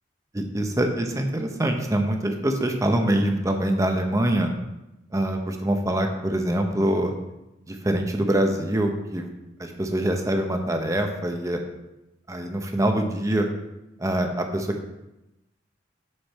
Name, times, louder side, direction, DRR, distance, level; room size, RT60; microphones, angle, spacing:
voice 1, 0.3-4.5 5.1-7.1 7.7-9.3 9.6-11.6 12.3-13.5 14.0-14.9, right 1 dB, 15° right, 4 dB, 0.8 m, -24 dB
6.6 x 6.5 x 4.2 m, 0.95 s
head